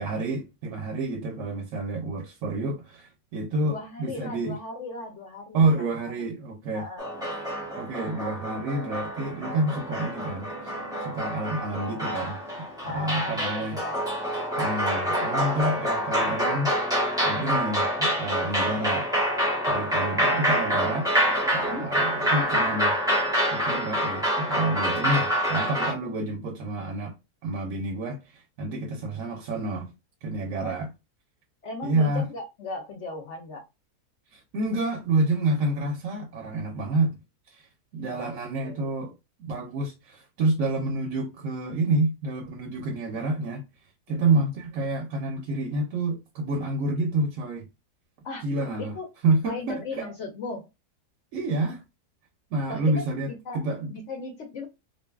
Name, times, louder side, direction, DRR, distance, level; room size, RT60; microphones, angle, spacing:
voice 1, 0.0-4.6 5.5-6.9 7.7-12.4 12.8-13.8 14.6-16.7 17.2-19.1 19.7-21.1 21.5-23.0 23.5-27.1 27.4-29.9 30.2-30.9 31.8-32.3 34.3-37.1 37.5-39.1 39.4-43.6 44.1-47.7 48.4-49.0 49.2-50.1 51.3-51.8 52.5-53.9, right 2 dB, 70° right, 0.9 m, -28 dB
voice 2, 3.6-6.2 6.7-7.3 12.8-13.9 21.5-21.9 30.6-30.7 31.6-33.6 38.1-39.1 44.1-44.4 48.2-49.1 49.4-50.7 52.7-53.6 53.9-54.7, left 3 dB, 60° left, 0.8 m, -37 dB
sound 1, 7.0-25.9, equal, 5° right, 0.3 m, -27 dB
2.6 x 2.5 x 2.2 m
omnidirectional pair, 1.7 m